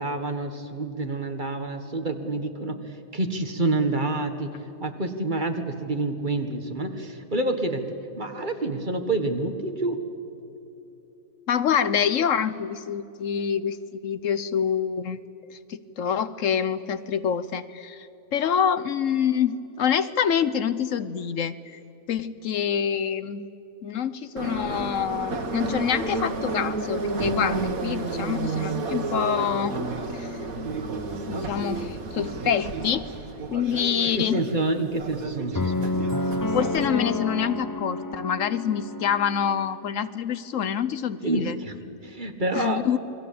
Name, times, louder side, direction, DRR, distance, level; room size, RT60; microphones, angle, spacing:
voice 1, 0.0-10.0 34.2-36.0 41.2-41.8 42.0-43.0, right 2 dB, 35° right, 6 dB, 1.7 m, -28 dB
voice 2, 11.5-15.2 15.5-21.8 22.1-23.5 23.8-29.8 30.1-30.4 31.3-33.1 33.5-34.4 36.5-41.5 42.5-43.0, left 8 dB, 70° left, 14 dB, 1.1 m, -26 dB
Subway metro underground, 24.4-36.9, right 3 dB, 90° right, 1.9 m, -31 dB
sound 1, 24.7-30.9, equal, 55° right, 4.9 m, -46 dB
sound 2, 35.5-39.7, left 2 dB, 35° left, 0.3 m, -29 dB
28.5 x 22.0 x 8.6 m, 2.9 s
omnidirectional pair, 1.4 m